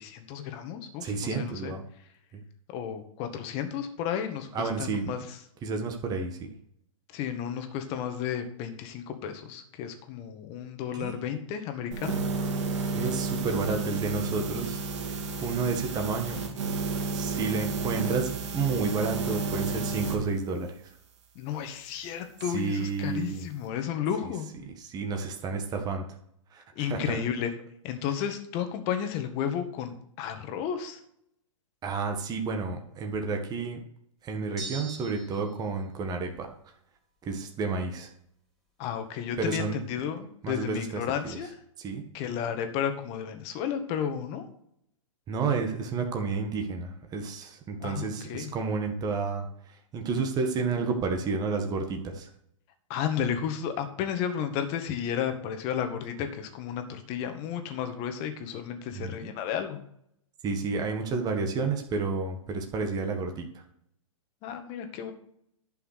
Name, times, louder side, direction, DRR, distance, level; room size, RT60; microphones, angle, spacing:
voice 1, 0.0-1.7 2.7-5.4 7.1-12.2 21.4-24.5 26.8-27.5 27.8-31.0 38.8-41.6 42.1-44.5 47.8-48.6 52.9-59.8 64.4-65.1, left 8 dB, 35° left, 6 dB, 1.9 m, -33 dB
voice 2, 1.0-1.8 2.3-2.4 4.5-5.1 5.6-6.5 10.9-11.1 12.9-14.8 15.4-16.4 17.1-20.7 22.5-23.5 24.8-26.0 26.5-27.2 31.8-33.8 34.2-36.5 37.3-38.1 39.4-39.8 40.4-41.4 41.8-42.0 45.3-49.5 49.9-52.3 58.9-59.3 60.4-63.4, right 4 dB, 20° right, 4 dB, 1.7 m, -30 dB
sound 1, 11.9-20.2, right 4 dB, 60° right, 2.4 m, -31 dB
sound 2, 34.6-35.5, right 3 dB, ahead, 3.6 m, -40 dB
11.5 x 5.6 x 6.7 m, 0.71 s
hypercardioid pair, 120°, 17 cm